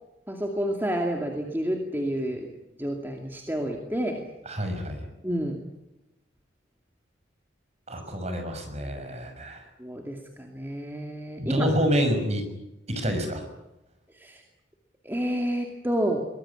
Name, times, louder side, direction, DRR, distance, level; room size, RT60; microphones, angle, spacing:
voice 1, 0.3-2.5 2.8-4.2 5.2-5.6 9.8-11.7 14.2-14.4 15.0-16.2, equal, 10° right, 1 dB, 2.4 m, -29 dB
voice 2, 4.5-5.1 7.9-9.6 11.4-12.5 12.9-13.4, equal, 35° right, 6 dB, 6.0 m, -27 dB
23.0 x 20.0 x 9.9 m, 0.95 s
head